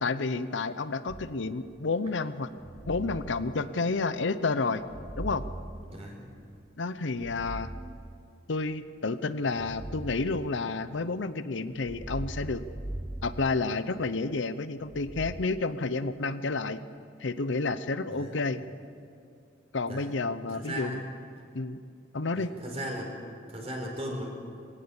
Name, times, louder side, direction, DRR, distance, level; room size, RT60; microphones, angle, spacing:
voice 1, 0.0-2.5 2.9-4.8 5.2-5.4 6.8-7.7 8.5-12.6 13.2-16.8 17.2-18.6 19.7-21.0 21.5-21.8 22.1-22.5, left 3 dB, 80° left, 13 dB, 0.8 m, -30 dB
sound 1, 1.1-1.8 2.6-4.2 4.8-6.6 7.1-8.7 9.5-11.2 11.7-14.3 14.9-15.5, right 1 dB, 15° right, 0.5 m, -41 dB
voice 2, 5.9-6.2 18.1-18.4 19.9-20.1 20.5-21.1 22.3-23.1 23.5-24.2, equal, 35° right, 0 dB, 4.7 m, -37 dB
21.0 x 17.5 x 7.2 m, 2.4 s
head